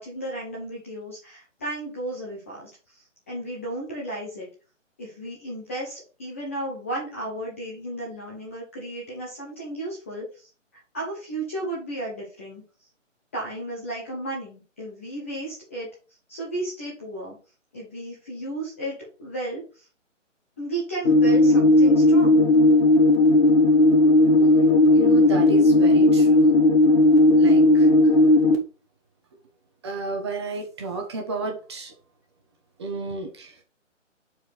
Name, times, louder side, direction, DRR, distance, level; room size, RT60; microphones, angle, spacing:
voice 1, 0.0-4.5 5.0-12.6 13.3-15.9 16.3-17.4 17.7-19.9 20.6-22.5, right 1 dB, 10° left, -4 dB, 0.8 m, -34 dB
sound 1, 21.0-28.6, left 2 dB, 50° left, 2.7 m, -16 dB
voice 2, 24.9-26.6 27.4-27.9 29.8-31.9 32.8-33.5, right 3 dB, 20° right, 2 dB, 1.1 m, -32 dB
7.6 x 4.7 x 4.1 m, 0.34 s
hypercardioid pair, 165°, 38 cm